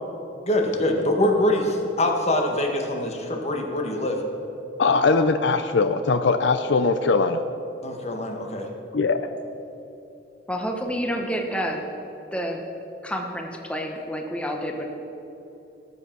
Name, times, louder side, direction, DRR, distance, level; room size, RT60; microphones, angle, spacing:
voice 1, 0.4-4.2 7.8-8.7, left 1 dB, 35° left, 2 dB, 1.6 m, -24 dB
voice 2, 4.8-7.4 8.9-9.3, left 4 dB, 70° left, 9 dB, 0.5 m, -21 dB
voice 3, 10.5-11.9 12.3-12.6 13.0-14.9, equal, 5° left, 2 dB, 1.1 m, -29 dB
18.5 x 7.0 x 6.0 m, 3.0 s
head